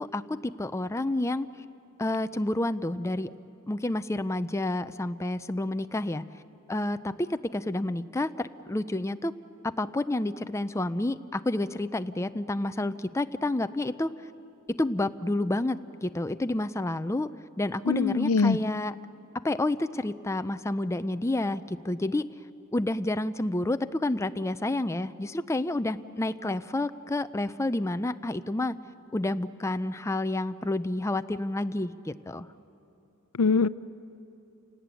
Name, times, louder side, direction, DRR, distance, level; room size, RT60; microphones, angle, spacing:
voice 1, 0.0-1.5 2.0-3.3 3.7-6.2 6.7-9.3 9.6-14.1 14.7-17.3 17.6-18.9 19.4-22.3 22.7-28.7 29.1-32.5, left 2 dB, 15° left, 11 dB, 0.5 m, -29 dB
voice 2, 17.9-18.6 33.4-33.7, left 4 dB, 80° left, 17 dB, 0.5 m, -22 dB
29.0 x 18.0 x 9.1 m, 2.8 s
head